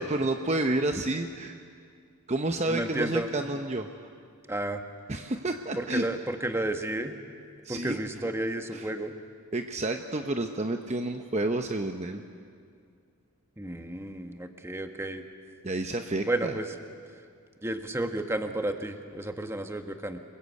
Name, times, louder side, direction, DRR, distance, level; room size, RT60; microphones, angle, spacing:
voice 1, 0.0-1.6 2.3-3.9 5.1-6.0 7.6-8.0 8.7-8.9 9.5-12.2 15.6-16.5, right 2 dB, 30° right, 6 dB, 0.9 m, -30 dB
voice 2, 2.7-3.3 4.5-4.8 5.8-7.1 7.7-9.1 13.6-15.2 16.3-16.7 17.6-20.2, right 1 dB, 10° right, 6 dB, 1.3 m, -32 dB
29.0 x 21.5 x 8.4 m, 2.2 s
head